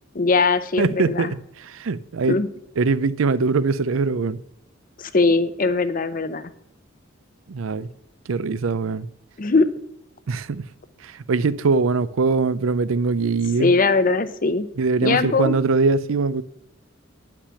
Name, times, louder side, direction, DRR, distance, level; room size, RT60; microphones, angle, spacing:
voice 1, 0.1-1.3 2.3-2.5 5.0-6.5 9.4-9.7 13.6-14.7 15.0-15.6, left 3 dB, 40° left, 0.7 m, -20 dB
voice 2, 0.8-2.4 2.8-4.4 7.5-7.9 8.3-9.1 10.3-10.7 11.0-13.7 14.8-16.4, right 4 dB, 80° right, 0.5 m, -22 dB
9.9 x 6.0 x 8.3 m
head